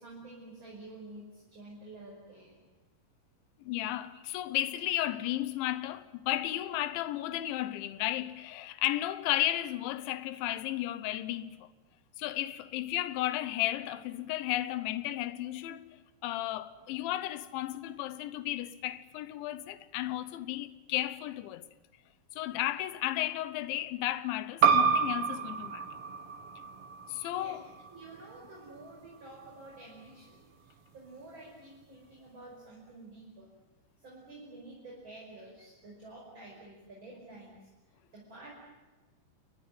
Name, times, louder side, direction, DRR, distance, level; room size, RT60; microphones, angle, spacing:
voice 1, 0.0-2.6 27.3-27.6 27.9-33.5 34.0-37.7 38.1-38.5, right 2 dB, 25° right, 5.8 m, -50 dB
voice 2, 3.6-11.7 12.2-16.0 16.2-21.7 22.3-25.9 27.1-27.6, left 14 dB, 90° left, 3.4 m, -34 dB
sound 1, 24.6-29.8, right 6 dB, 85° right, 1.3 m, -30 dB
29.5 x 21.5 x 7.7 m
omnidirectional pair, 5.2 m